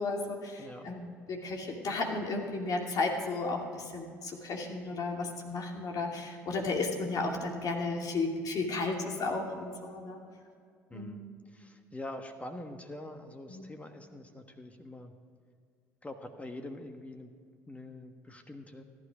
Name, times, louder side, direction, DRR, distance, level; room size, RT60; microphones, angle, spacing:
voice 1, 0.0-10.2 10.9-11.2 13.5-13.7, left 3 dB, 50° left, 1 dB, 2.6 m, -34 dB
voice 2, 0.6-0.9 10.9-15.1 16.0-17.3 17.7-18.8, left 1 dB, 15° left, 6 dB, 1.4 m, -45 dB
14.5 x 11.5 x 5.0 m, 2.2 s
hypercardioid pair, 60°, 8 cm